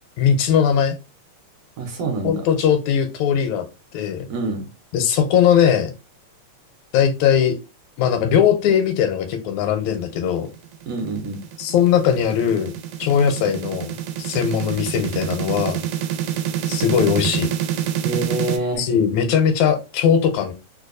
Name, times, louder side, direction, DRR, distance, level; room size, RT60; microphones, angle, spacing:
voice 1, 0.2-1.0 2.2-3.7 3.9-4.3 4.9-5.9 6.9-7.6 8.0-10.5 11.6-12.7 13.0-13.9 14.2-15.8 16.7-17.5 18.8-20.5, left 8 dB, 80° left, 1.9 m, -19 dB
voice 2, 1.8-2.4 4.3-4.7 10.9-11.4 18.0-18.9, right 2 dB, 70° right, 1.7 m, -26 dB
sound 1, 10.5-18.6, right 11 dB, 90° right, 2.0 m, -27 dB
4.5 x 2.2 x 2.5 m
omnidirectional pair, 3.3 m